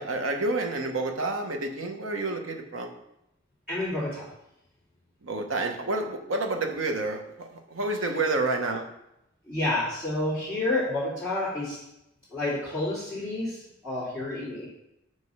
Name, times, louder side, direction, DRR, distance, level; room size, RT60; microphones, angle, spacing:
voice 1, 0.0-2.9 5.2-8.9, right 2 dB, 90° right, 4 dB, 1.0 m, -29 dB
voice 2, 3.7-4.3 9.5-11.8 12.3-14.7, left 2 dB, 10° right, -13 dB, 2.9 m, -29 dB
6.0 x 4.8 x 5.6 m, 0.86 s
head